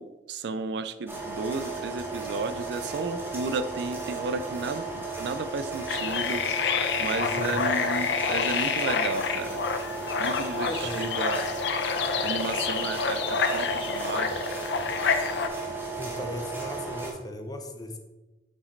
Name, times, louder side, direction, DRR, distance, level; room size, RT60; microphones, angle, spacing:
voice 1, 0.0-9.6 10.2-11.5 12.2-14.4, right 4 dB, 65° right, 12 dB, 0.3 m, -33 dB
sound 1, 1.1-17.1, right 3 dB, 10° right, 1.0 m, -35 dB
sound 2, 5.9-15.5, left 5 dB, 70° left, 0.5 m, -28 dB
voice 2, 7.2-7.6 10.7-11.1 16.0-18.0, left 1 dB, 20° left, 5 dB, 0.6 m, -37 dB
6.9 x 4.8 x 3.2 m, 1.1 s
head